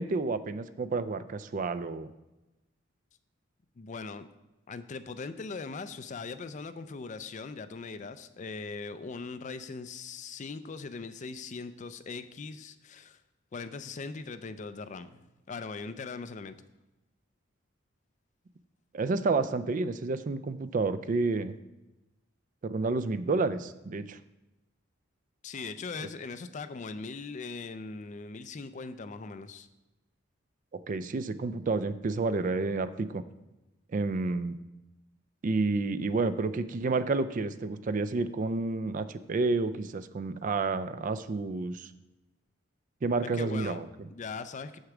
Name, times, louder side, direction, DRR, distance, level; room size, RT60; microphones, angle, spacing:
voice 1, 0.0-2.1 18.9-21.5 22.6-24.2 30.9-33.2 33.9-34.6 35.4-41.9 43.0-44.1, right 3 dB, 40° right, 13 dB, 0.4 m, -30 dB
voice 2, 3.8-4.3 4.7-13.2 13.5-16.5 25.4-29.7 43.3-43.8 44.1-44.8, left 4 dB, 40° left, 12 dB, 0.4 m, -40 dB
7.1 x 6.4 x 4.8 m, 1.0 s
head